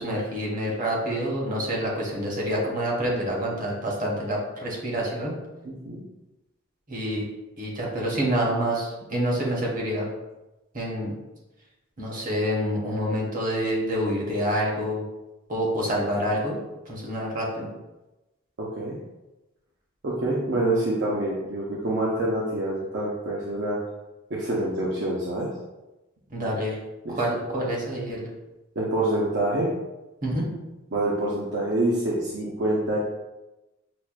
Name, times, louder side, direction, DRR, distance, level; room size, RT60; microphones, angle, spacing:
voice 1, 0.0-5.3 6.9-7.3 7.6-10.1 10.7-11.1 12.0-15.0 15.5-16.6 16.9-17.7 26.3-26.8 27.1-28.3 30.2-30.5, equal, 45° right, -4 dB, 1.1 m, -27 dB
voice 2, 5.6-6.0 18.6-19.0 20.0-23.8 24.3-25.5 27.0-27.2 28.8-29.7 30.9-33.0, right 1 dB, 60° right, -4 dB, 0.6 m, -26 dB
6.0 x 2.2 x 2.4 m, 1.0 s
head